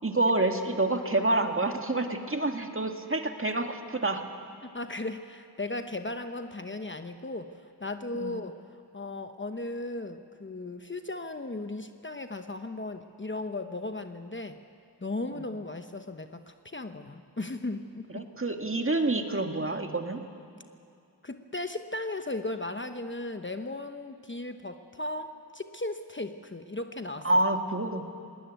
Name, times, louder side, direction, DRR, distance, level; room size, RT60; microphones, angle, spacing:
voice 1, 0.0-4.2 8.1-8.3 15.3-15.5 18.1-20.2 27.2-28.0, right 2 dB, 30° right, 5 dB, 1.8 m, -28 dB
voice 2, 4.6-8.6 8.9-14.6 15.0-18.2 21.2-27.3, left 2 dB, 30° left, 8 dB, 1.0 m, -36 dB
21.0 x 18.5 x 9.3 m, 2.6 s
wide cardioid pair, 65°, 40 cm